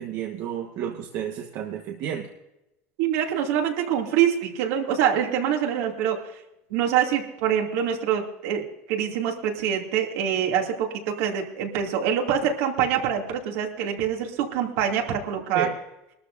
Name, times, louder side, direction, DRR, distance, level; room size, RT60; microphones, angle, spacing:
voice 1, 0.0-2.3 15.5-15.7, right 9 dB, 55° right, 2 dB, 1.3 m, -31 dB
voice 2, 3.0-6.2 6.7-8.6 8.9-15.7, right 9 dB, 75° right, 1 dB, 2.6 m, -25 dB
21.0 x 13.0 x 2.6 m, 0.89 s
supercardioid pair, 100°, 7 cm